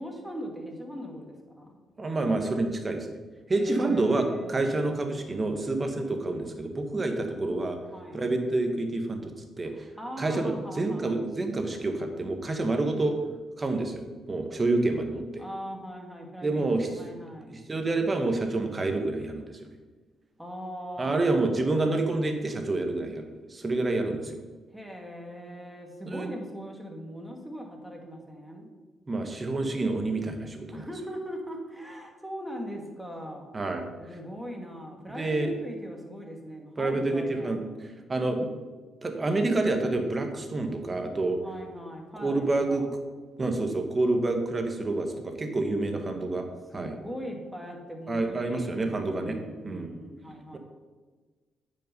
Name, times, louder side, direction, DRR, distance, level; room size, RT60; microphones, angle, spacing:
voice 1, 0.0-1.8 3.5-4.6 7.9-8.3 9.6-11.2 15.4-17.6 20.4-22.1 24.7-28.7 30.7-33.5 34.0-37.7 41.4-42.9 46.7-50.6, equal, 5° right, 1 dB, 2.3 m, -40 dB
voice 2, 2.0-3.1 3.5-7.8 8.1-9.9 10.2-13.2 13.6-15.4 16.4-16.9 17.5-19.6 21.0-24.4 26.1-26.3 29.1-30.8 33.5-33.9 35.1-35.5 36.8-38.5 39.0-41.4 42.2-42.8 43.4-46.5 46.7-46.9 48.1-49.4 49.6-49.9 50.5-50.6, right 2 dB, 30° right, 5 dB, 1.5 m, -28 dB
8.9 x 5.7 x 5.5 m, 1.3 s
supercardioid pair, 65°, 0 cm